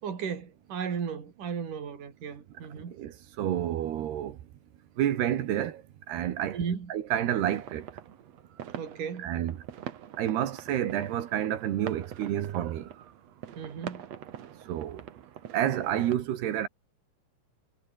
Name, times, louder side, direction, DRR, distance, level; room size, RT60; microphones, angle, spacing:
voice 1, 0.0-2.9 6.5-6.9 8.8-9.3 13.5-14.1, right 6 dB, 45° right, 5.1 m, -35 dB
voice 2, 2.5-4.4 5.0-6.6 6.9-7.9 9.2-9.6 10.2-12.9 14.6-15.0 15.5-16.7, right 11 dB, 65° right, 3.3 m, -29 dB
sound 1, 7.1-16.1, right 10 dB, 85° right, 1.4 m, -44 dB
omnidirectional pair, 5.6 m